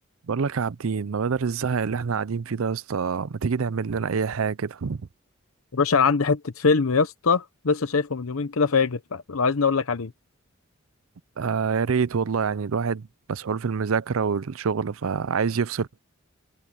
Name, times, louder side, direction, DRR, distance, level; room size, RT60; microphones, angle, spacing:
voice 1, 0.3-5.0 11.4-16.0, right 5 dB, 75° right, 0.5 m, -26 dB
voice 2, 5.7-10.1, left 5 dB, 80° left, 0.8 m, -22 dB
head